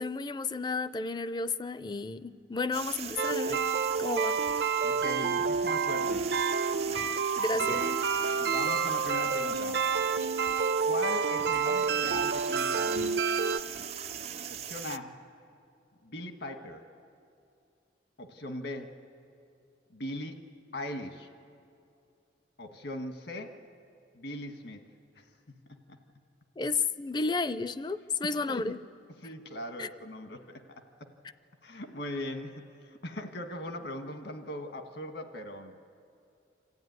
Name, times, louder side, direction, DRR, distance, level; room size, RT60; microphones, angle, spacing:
voice 1, 0.0-3.6 4.0-4.4 7.4-8.0 26.6-28.8 29.8-29.9, left 3 dB, 25° left, 14 dB, 0.4 m, -32 dB
sound 1, 2.7-15.0, right 8 dB, 35° right, 0.5 m, -41 dB
sound 2, 3.2-13.6, right 5 dB, 75° right, 0.7 m, -29 dB
voice 2, 4.8-6.3 7.5-7.8 8.4-9.8 10.8-13.3 14.5-15.2 16.0-16.8 18.2-18.9 19.9-20.4 20.7-21.3 22.6-23.6 24.1-24.8 25.1-25.3 25.9-26.0 28.5-28.7 29.2-30.8 31.6-35.7, left 1 dB, 70° left, 5 dB, 1.5 m, -39 dB
sound 3, 7.7-8.9 11.5-12.7, left 1 dB, 85° left, 5.0 m, -50 dB
26.5 x 14.0 x 9.4 m, 2.5 s
head